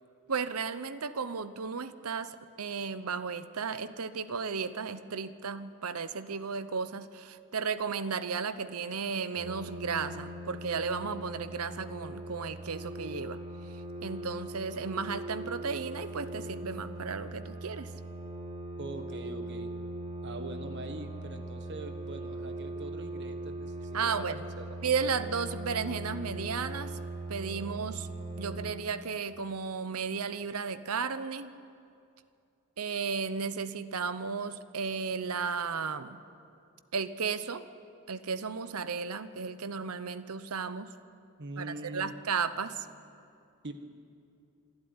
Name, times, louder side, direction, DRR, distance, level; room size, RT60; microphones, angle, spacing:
voice 1, 0.3-13.4 14.0-17.9 23.9-24.4 24.8-27.0 27.3-28.1 28.4-31.5 32.8-36.2 36.9-37.6 38.1-40.9 41.6-42.9, right 5 dB, 90° right, 13 dB, 0.9 m, -34 dB
sound 1, 9.4-28.7, right 1 dB, 25° right, 1.6 m, -40 dB
voice 2, 18.8-19.7 20.2-24.7 41.4-42.1 43.6-43.7, right 2 dB, 55° right, 7 dB, 1.5 m, -43 dB
26.0 x 12.0 x 9.7 m, 2.6 s
head